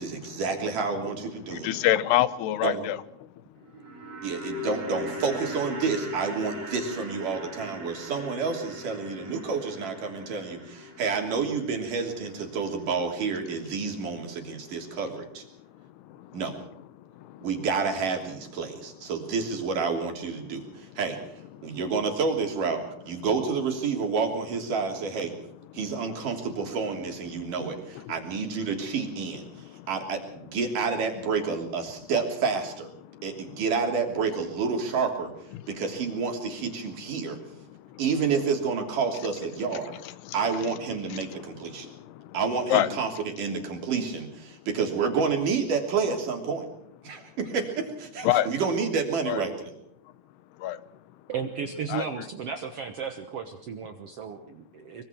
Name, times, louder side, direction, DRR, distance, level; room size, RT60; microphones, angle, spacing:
voice 1, 0.0-1.7 2.6-2.8 4.2-15.4 16.3-16.6 17.4-25.3 25.7-32.9 33.2-35.3 35.7-37.4 38.0-39.9 40.3-41.9 42.3-43.1 43.4-46.7 47.0-49.7, right 5 dB, 55° right, 3 dB, 4.5 m, -29 dB
voice 2, 1.4-3.4 15.6-16.4 17.0-17.5 21.5-21.8 27.9-28.1 29.5-29.9 33.1-33.2 35.5-35.7 37.7-38.0 39.7-40.7 41.1-42.4 42.7-42.9 48.2-48.5 49.3-49.4 50.6-50.8 51.9-52.1, left 13 dB, 85° left, 15 dB, 3.0 m, -29 dB
sound 1, 3.6-13.8 14.1-14.2, left 2 dB, 25° right, 4.5 m, -40 dB
voice 3, 51.3-55.0, right 6 dB, 80° right, 6 dB, 1.3 m, -34 dB
24.0 x 23.5 x 4.6 m, 0.73 s
omnidirectional pair, 4.6 m